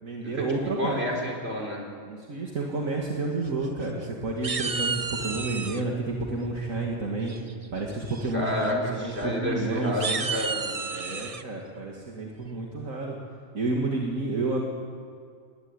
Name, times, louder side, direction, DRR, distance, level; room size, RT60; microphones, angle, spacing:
voice 1, 0.0-1.0 2.1-7.3 7.7-10.3 10.9-13.2 13.5-14.6, right 3 dB, 70° right, -1 dB, 2.6 m, -30 dB
voice 2, 0.6-1.8 8.3-10.8, left 1 dB, 45° right, 0 dB, 4.7 m, -30 dB
sound 1, 3.5-4.1 4.4-5.8 7.3-7.7 8.1-8.3 8.6-8.7 9.1-9.2 9.8-11.4, right 4 dB, 30° right, 0.8 m, -32 dB
21.0 x 17.5 x 9.7 m, 2.2 s
omnidirectional pair, 1.5 m